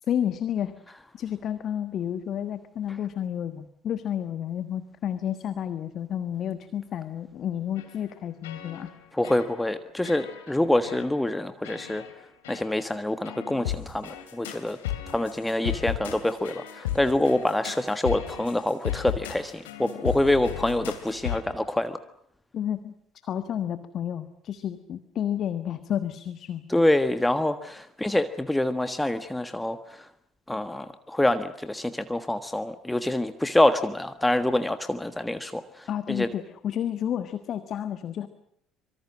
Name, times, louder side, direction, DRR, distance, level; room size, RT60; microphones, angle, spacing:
voice 1, 0.1-0.7 1.1-8.9 22.5-22.9 23.2-26.8 35.9-38.3, left 10 dB, 50° left, 11 dB, 1.4 m, -31 dB
sound 1, 7.7-8.1 8.4-9.0 9.2-9.7 10.0-10.5 10.8-11.1 11.6-12.1 12.4-12.7 13.2-21.4, left 12 dB, 75° left, 2.9 m, -35 dB
voice 2, 9.1-12.0 12.5-14.8 15.1-22.0 26.7-30.1 30.5-36.3, left 1 dB, 10° left, 10 dB, 1.5 m, -26 dB
26.0 x 24.0 x 7.5 m, 0.70 s
figure-of-eight pair, 55°, 0 cm